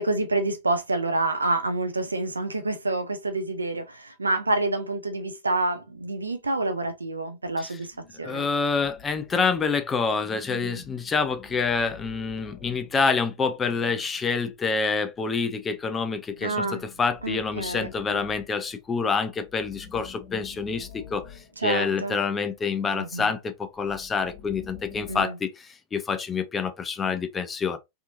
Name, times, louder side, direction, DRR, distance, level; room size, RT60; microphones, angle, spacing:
voice 1, 0.0-8.5 10.5-10.8 16.4-16.8 17.2-18.2 21.6-22.2 22.9-23.3 25.1-25.4, right 2 dB, 80° right, 0.6 m, -28 dB
sound 1, 7.9-9.7 10.1-14.5 16.2-19.0 19.3-22.5 23.5-25.2, left 6 dB, 40° left, 1.6 m, -48 dB
voice 2, 8.2-27.8, left 5 dB, 20° left, 0.6 m, -27 dB
3.5 x 2.9 x 2.5 m
figure-of-eight pair, 90°, 0 cm